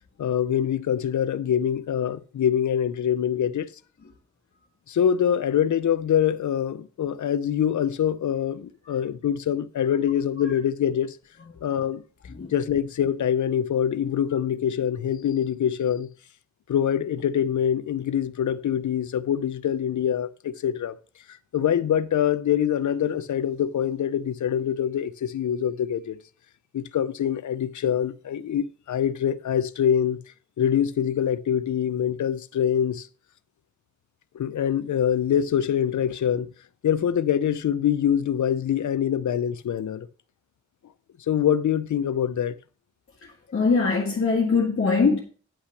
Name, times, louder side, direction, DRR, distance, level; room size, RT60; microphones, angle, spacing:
voice 1, 0.2-3.7 4.9-11.2 11.6-12.0 12.5-16.1 16.7-21.0 21.3-26.2 26.7-30.2 30.6-33.1 34.3-36.5 36.8-40.1 41.3-42.5, left 9 dB, 80° left, 0.6 m, -24 dB
voice 2, 43.5-45.2, left 4 dB, 50° left, 1.7 m, -21 dB
10.0 x 5.8 x 5.8 m
wide cardioid pair, 175°, 29 cm